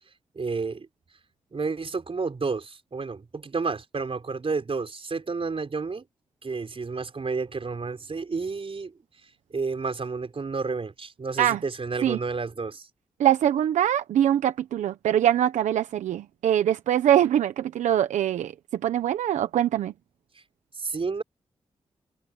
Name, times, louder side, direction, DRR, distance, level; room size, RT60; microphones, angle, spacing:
voice 1, 0.3-0.9 1.5-6.0 6.4-8.9 9.5-12.9 20.7-21.2, right 4 dB, 50° right, 4.7 m, -31 dB
voice 2, 13.2-18.5 18.8-19.9, right 11 dB, 90° right, 1.0 m, -23 dB
supercardioid pair, 40°, 12 cm